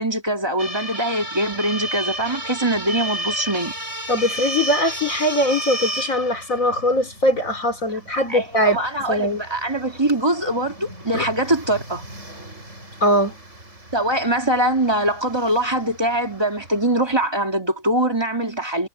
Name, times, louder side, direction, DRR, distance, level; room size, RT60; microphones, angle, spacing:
voice 1, 0.0-3.7 8.3-12.0 13.9-18.9, right 1 dB, 15° right, 2.3 m, -22 dB
sound 1, 0.6-17.3, right 1 dB, 40° right, 7.3 m, -33 dB
voice 2, 4.1-8.8 9.1-9.4 11.1-11.2 13.0-13.4, equal, 45° left, 3.2 m, -21 dB
omnidirectional pair, 2.1 m